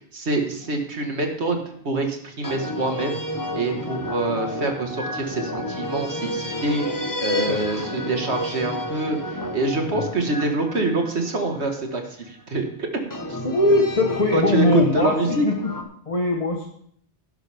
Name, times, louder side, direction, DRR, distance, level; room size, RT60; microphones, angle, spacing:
voice 1, 0.1-1.6 1.8-3.2 3.5-12.9 13.3-13.4 14.3-15.5, right 2 dB, 80° right, 4 dB, 2.1 m, -25 dB
sound 1, 0.6-1.1 2.4-12.1 13.1-15.8, left 1 dB, 20° left, 1.1 m, -31 dB
voice 2, 13.4-15.7 16.1-16.6, left 2 dB, 35° left, 0 dB, 1.3 m, -21 dB
12.0 x 11.0 x 3.5 m, 0.64 s
omnidirectional pair, 1.1 m